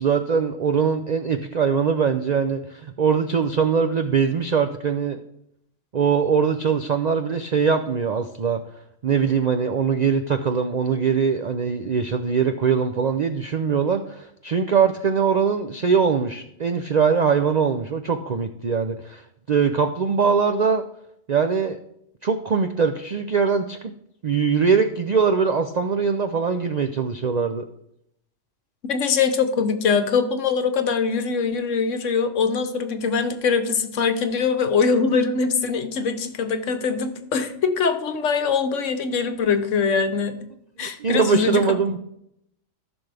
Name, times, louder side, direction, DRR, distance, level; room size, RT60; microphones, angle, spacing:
voice 1, 0.0-5.2 5.9-8.6 9.0-19.2 19.5-20.8 21.3-21.8 22.2-23.9 24.2-27.7 40.8-42.0, right 6 dB, 70° right, 7 dB, 0.4 m, -22 dB
voice 2, 28.9-40.4 40.8-41.6, left 5 dB, 65° left, 9 dB, 1.2 m, -22 dB
14.5 x 6.1 x 3.4 m, 0.76 s
omnidirectional pair, 1.4 m